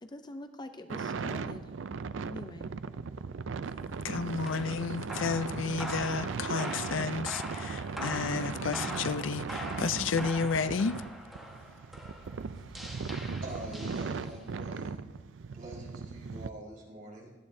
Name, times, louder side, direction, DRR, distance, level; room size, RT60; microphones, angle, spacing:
voice 1, 0.0-1.7 2.2-2.7, left 1 dB, 20° left, 0.5 m, -44 dB
sound 1, 0.9-16.5, right 5 dB, 80° right, 0.5 m, -38 dB
voice 2, 4.0-11.0, left 5 dB, 85° left, 0.5 m, -32 dB
sound 2, 4.4-14.6, equal, ahead, 1.4 m, -43 dB
voice 3, 13.4-15.0 15.5-17.3, right 1 dB, 50° right, 4.9 m, -44 dB
17.5 x 12.5 x 2.7 m
head